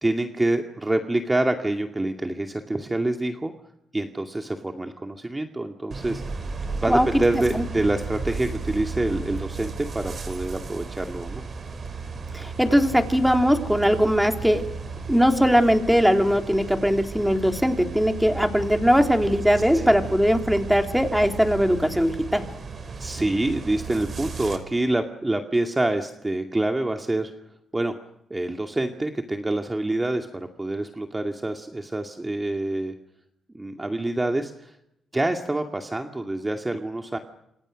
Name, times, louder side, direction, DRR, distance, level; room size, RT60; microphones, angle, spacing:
voice 1, 0.0-3.5 3.9-6.2 6.8-11.4 19.7-19.9 23.0-27.3 27.7-27.9 28.3-32.9 33.5-34.7 35.1-37.2, right 2 dB, 20° right, 4 dB, 2.3 m, -26 dB
sound 1, 5.9-24.6, right 4 dB, 45° right, 5.8 m, -34 dB
voice 2, 12.3-14.6 15.1-22.5, equal, ahead, 5 dB, 3.5 m, -20 dB
28.5 x 26.5 x 6.5 m, 0.82 s
cardioid pair, 75°, 0 cm